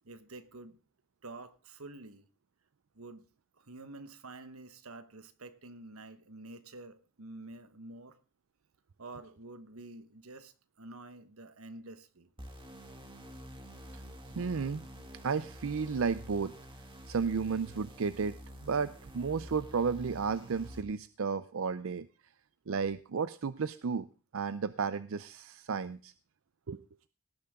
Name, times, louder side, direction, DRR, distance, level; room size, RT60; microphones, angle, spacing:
voice 1, 0.0-0.8 1.2-2.2 2.9-3.2 3.6-8.2 9.0-12.3, right 2 dB, 90° right, 11 dB, 1.3 m, -48 dB
sound 1, 12.4-20.8, equal, 25° right, 2.1 m, -48 dB
voice 2, 14.4-14.8 15.2-16.5 17.1-18.4 18.6-22.1 22.7-24.1 24.3-26.1 26.7-26.8, right 5 dB, 70° right, 14 dB, 0.5 m, -33 dB
18.5 x 10.5 x 3.6 m, 0.34 s
head